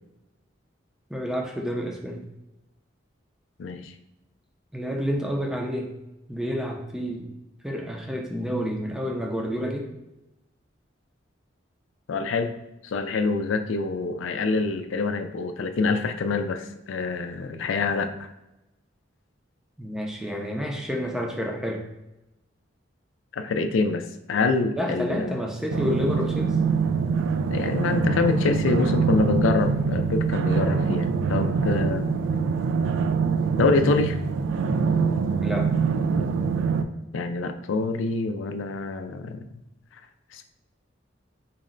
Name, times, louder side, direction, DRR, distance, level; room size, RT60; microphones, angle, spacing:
voice 1, 1.1-2.3 4.7-5.9 6.3-7.3 7.6-9.9 19.8-21.8 24.7-26.6 35.4-35.7, equal, 5° right, 0 dB, 0.5 m, -29 dB
voice 2, 3.6-3.9 12.1-12.5 12.8-18.1 23.3-25.4 27.5-32.1 33.6-34.2 37.1-39.5 40.3-40.4, left 3 dB, 80° left, 8 dB, 0.4 m, -26 dB
sound 1, 25.7-36.8, right 5 dB, 85° right, 0.3 m, -24 dB
4.0 x 2.1 x 3.6 m, 0.94 s
head